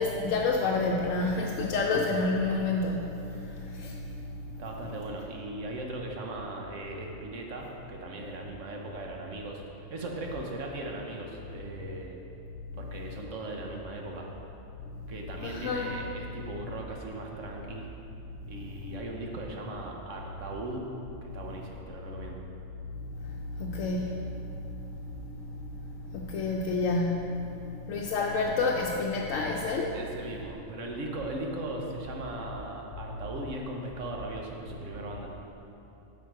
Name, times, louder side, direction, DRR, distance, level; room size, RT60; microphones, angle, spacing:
voice 1, 0.0-3.2 3.4-3.9 15.4-15.9 23.6-24.5 26.1-27.3 27.9-30.0, left 3 dB, 80° left, 0 dB, 1.0 m, -28 dB
voice 2, 4.6-12.2 12.8-14.3 15.1-17.9 18.5-20.8 21.2-22.4 29.9-35.3, right 2 dB, 75° right, 0 dB, 1.3 m, -38 dB
8.8 x 5.9 x 4.6 m, 2.8 s
omnidirectional pair, 1.3 m